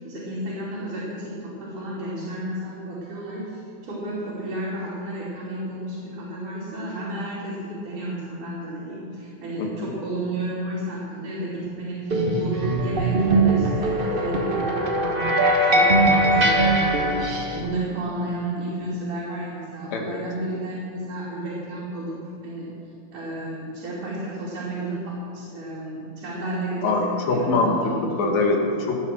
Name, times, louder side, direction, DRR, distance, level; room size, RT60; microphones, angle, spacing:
voice 1, 0.0-15.3 15.7-16.9 17.5-22.1 22.4-22.7 23.1-27.0 27.3-28.1 28.6-28.7, right 1 dB, 85° right, -8 dB, 4.7 m, -32 dB
sound 1, 12.1-17.6, right 1 dB, 65° right, 0.5 m, -21 dB
voice 2, 19.9-20.2 26.8-27.9 28.2-29.0, left 3 dB, 65° left, 1 dB, 3.1 m, -23 dB
18.0 x 9.5 x 6.3 m, 2.9 s
omnidirectional pair, 3.5 m